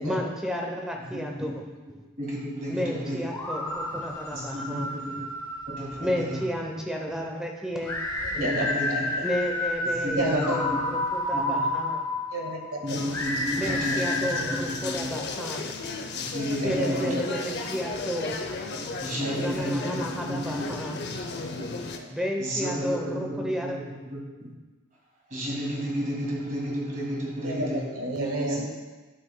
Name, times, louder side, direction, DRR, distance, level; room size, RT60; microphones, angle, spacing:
voice 1, 0.0-1.6 2.7-4.9 6.0-8.0 8.3-8.5 9.2-12.0 13.5-15.7 16.6-18.4 19.4-21.0 22.1-23.8, equal, 5° right, 1 dB, 0.7 m, -32 dB
voice 2, 2.2-3.2 4.3-5.2 5.6-6.4 8.4-9.1 9.9-10.8 11.3-11.7 12.8-15.1 16.1-17.2 19.0-20.7 21.6-21.7 22.4-23.7 24.1-24.5 25.3-27.8 28.5-28.6, equal, 35° right, -3 dB, 1.8 m, -32 dB
sound 1, 3.3-6.4 7.8-14.6, left 2 dB, 15° left, 1.0 m, -30 dB
voice 3, 8.2-9.3 10.0-10.5 12.3-13.0 16.6-17.2 19.2-19.5 21.5-22.1 27.4-28.7, right 1 dB, 70° right, 0 dB, 1.4 m, -31 dB
sound 2, 12.9-22.0, left 3 dB, 50° left, 0.6 m, -35 dB
12.0 x 5.9 x 2.2 m, 1.3 s
head